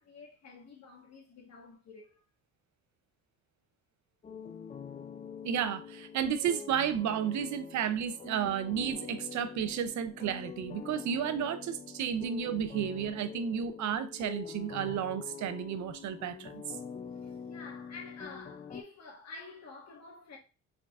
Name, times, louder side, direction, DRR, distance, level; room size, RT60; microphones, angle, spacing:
voice 1, 0.0-2.2 17.2-20.4, left 4 dB, 60° left, 1.4 m, -49 dB
sound 1, 4.2-18.8, left 6 dB, 25° left, 0.4 m, -45 dB
voice 2, 5.4-16.6, right 8 dB, 70° right, 0.6 m, -32 dB
4.9 x 3.7 x 2.4 m
cardioid pair, 90°, 30 cm